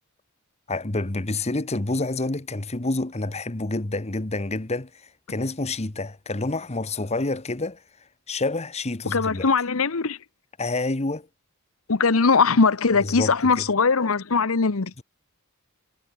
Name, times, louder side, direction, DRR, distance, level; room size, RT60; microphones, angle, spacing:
voice 1, 0.7-4.9 5.3-7.8 8.3-9.5 10.6-11.3 13.0-13.6, left 2 dB, 30° left, 1.1 m, -28 dB
voice 2, 9.1-10.2 11.9-14.9, left 4 dB, 75° left, 1.0 m, -20 dB
head